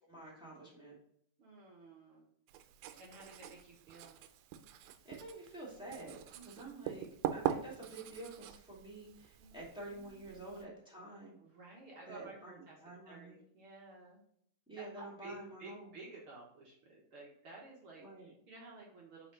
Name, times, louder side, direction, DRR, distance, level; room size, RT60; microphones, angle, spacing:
voice 1, 0.0-0.9 5.0-7.1 7.3-11.4 12.1-12.6 12.8-13.3 14.7-15.8 18.0-18.3, right 2 dB, ahead, -6 dB, 1.2 m, -49 dB
voice 2, 1.4-2.3 3.0-4.2 6.3-6.8 9.4-10.2 11.4-14.2 14.8-19.3, right 2 dB, 60° right, -3 dB, 1.4 m, -54 dB
Writing, 2.5-10.6, right 10 dB, 85° right, 2.3 m, -43 dB
6.1 x 4.7 x 3.8 m, 0.66 s
omnidirectional pair, 4.0 m